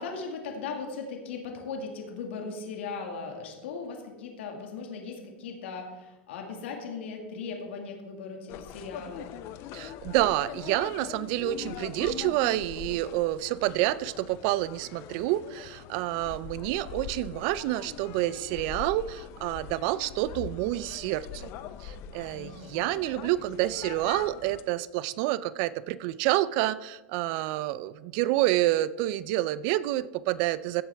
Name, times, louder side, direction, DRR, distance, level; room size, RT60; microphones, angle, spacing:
voice 1, 0.0-9.3 22.3-22.8, left 4 dB, 75° left, 2 dB, 1.9 m, -38 dB
sound 1, 8.5-24.6, left 9 dB, 45° left, 0.6 m, -42 dB
voice 2, 9.7-21.5 21.8-30.8, right 15 dB, 50° right, 18 dB, 0.4 m, -28 dB
15.5 x 7.4 x 3.4 m, 1.1 s
supercardioid pair, 130°, 6 cm